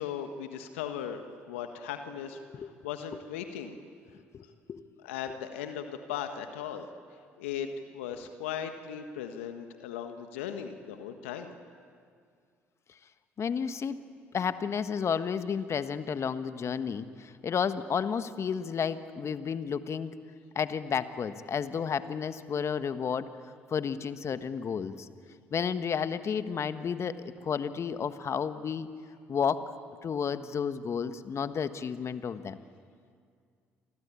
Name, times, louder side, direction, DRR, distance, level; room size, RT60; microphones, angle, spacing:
voice 1, 0.0-3.8 5.0-6.9 7.4-7.7 7.9-11.5, left 9 dB, 80° left, 7 dB, 1.4 m, -38 dB
voice 2, 13.4-14.0 14.3-20.1 20.5-23.3 23.7-25.1 25.5-27.2 27.4-28.9 29.3-29.6 30.0-32.6, left 6 dB, 45° left, 11 dB, 1.4 m, -31 dB
29.0 x 24.0 x 8.5 m, 2.2 s
hypercardioid pair, 55°, 7 cm